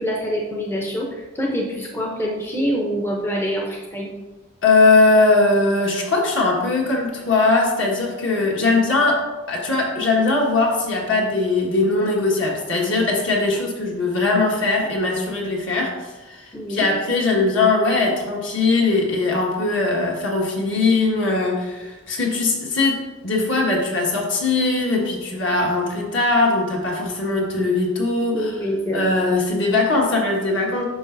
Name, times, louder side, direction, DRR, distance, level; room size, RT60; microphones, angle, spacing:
voice 1, 0.0-4.1 16.5-16.9 28.3-29.2, equal, 10° left, -1 dB, 0.6 m, -25 dB
voice 2, 4.6-28.6 28.9-30.8, left 3 dB, 60° left, -2 dB, 1.5 m, -20 dB
8.8 x 5.9 x 2.6 m, 1.2 s
head